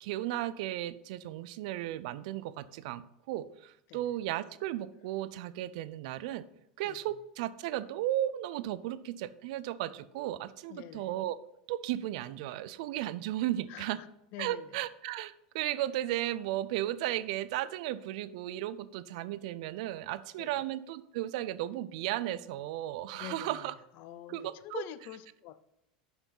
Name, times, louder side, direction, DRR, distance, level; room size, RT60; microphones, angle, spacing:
voice 1, 0.0-6.5 6.8-11.4 11.7-14.0 14.4-23.7 24.3-24.8, right 14 dB, 65° right, 15 dB, 0.6 m, -35 dB
voice 2, 10.7-11.1 13.7-14.1 14.3-14.7 20.4-20.5 23.1-23.6 24.0-25.6, left 12 dB, 55° left, 14 dB, 0.6 m, -45 dB
10.0 x 5.9 x 4.0 m, 0.83 s
hypercardioid pair, 100°, 4 cm